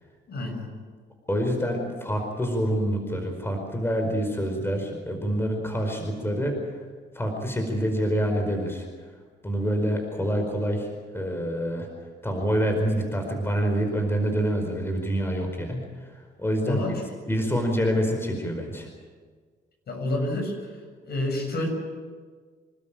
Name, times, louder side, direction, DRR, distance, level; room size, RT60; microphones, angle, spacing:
voice 1, 0.3-0.7 16.6-17.0 19.9-20.5 21.0-21.7, left 1 dB, 55° left, 3 dB, 7.1 m, -28 dB
voice 2, 1.3-6.5 7.1-8.9 9.4-10.9 11.1-11.9 12.2-15.8 16.4-17.0 17.3-18.9, equal, 10° left, 3 dB, 4.8 m, -26 dB
27.5 x 12.5 x 9.1 m, 1.5 s
cardioid pair, 90°, 20 cm